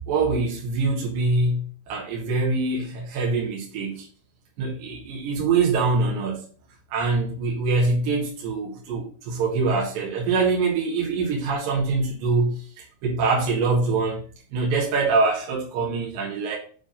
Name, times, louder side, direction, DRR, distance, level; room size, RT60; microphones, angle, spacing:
voice 1, 0.1-4.1 4.6-6.5 6.9-14.2 14.5-16.6, right 3 dB, 65° right, -4 dB, 3.0 m, -24 dB
7.4 x 3.5 x 5.5 m, 0.44 s
omnidirectional pair, 4.5 m